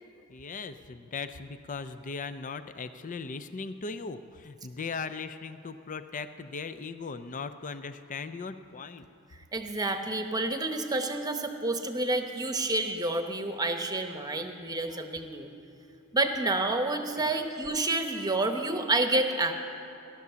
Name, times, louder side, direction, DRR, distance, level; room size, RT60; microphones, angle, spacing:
voice 1, 0.3-9.1, left 4 dB, 35° left, 10 dB, 0.5 m, -38 dB
voice 2, 9.5-15.5 16.1-19.5, right 2 dB, 20° right, 6 dB, 1.0 m, -29 dB
16.5 x 12.0 x 6.9 m, 2.9 s
head